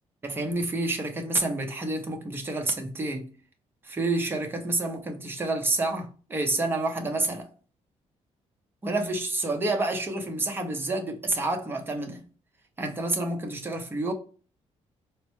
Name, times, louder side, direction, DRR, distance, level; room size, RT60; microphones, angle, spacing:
voice 1, 0.2-3.3 3.8-7.5 8.8-12.2 12.8-14.1, right 2 dB, 20° right, 0.6 m, -29 dB
4.3 x 2.1 x 2.9 m
cardioid pair, 165°, 12 cm